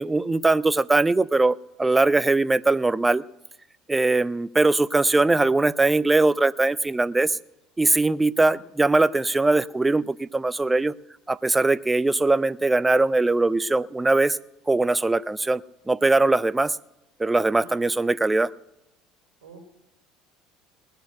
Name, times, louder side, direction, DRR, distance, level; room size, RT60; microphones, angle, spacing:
voice 1, 0.0-3.2 3.9-7.4 7.8-10.9 11.3-14.4 14.7-16.8 17.2-18.5, right 2 dB, 15° right, 19 dB, 0.4 m, -21 dB
voice 2, 17.5-18.2 19.4-19.6, right 5 dB, 70° right, 3 dB, 2.4 m, -49 dB
19.0 x 6.8 x 7.7 m, 0.94 s
figure-of-eight pair, 65°, 0 cm